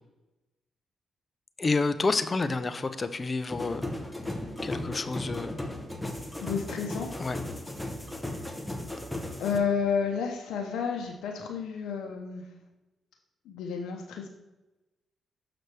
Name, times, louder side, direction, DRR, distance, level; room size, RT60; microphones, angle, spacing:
voice 1, 1.6-3.9 4.6-5.6 7.2-7.4, left 3 dB, 35° left, 11 dB, 0.5 m, -29 dB
sound 1, 3.5-9.6, left 1 dB, 10° left, 0.9 m, -36 dB
voice 2, 6.4-7.1 9.4-12.4 13.5-14.3, left 6 dB, 90° left, 1 dB, 0.7 m, -31 dB
6.7 x 5.9 x 3.3 m, 1.0 s
cardioid pair, 85°, 0 cm